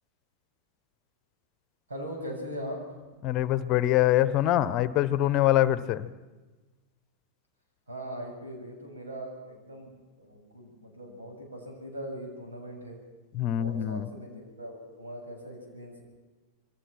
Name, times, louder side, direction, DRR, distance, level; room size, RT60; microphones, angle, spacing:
voice 1, 1.9-2.8 7.9-13.0 13.5-16.0, equal, 75° right, 2 dB, 7.8 m, -40 dB
voice 2, 3.2-6.1 13.3-14.1, left 13 dB, 40° left, 16 dB, 1.0 m, -24 dB
28.0 x 23.5 x 5.9 m, 1.2 s
figure-of-eight pair, 90°, 0 cm